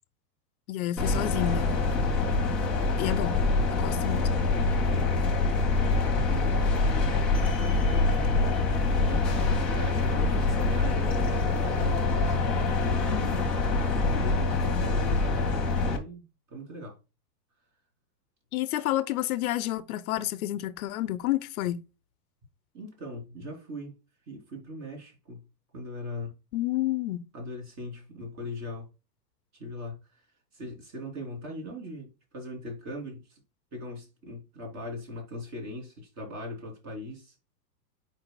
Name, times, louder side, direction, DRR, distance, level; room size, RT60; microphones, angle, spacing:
voice 1, 0.7-1.7 3.0-3.4 3.7-4.2 13.1-13.5 18.5-21.8 26.5-27.3, left 14 dB, 60° left, 0.7 m, -30 dB
sound 1, 1.0-16.0, left 3 dB, ahead, 0.3 m, -25 dB
voice 2, 4.6-13.2 14.0-17.0 22.7-24.0 24.3-25.4 25.7-26.3 27.3-28.9 29.5-30.3 30.5-33.4 33.7-37.4, left 1 dB, 35° right, 3.5 m, -40 dB
8.7 x 5.0 x 2.3 m
hypercardioid pair, 135°, 50 cm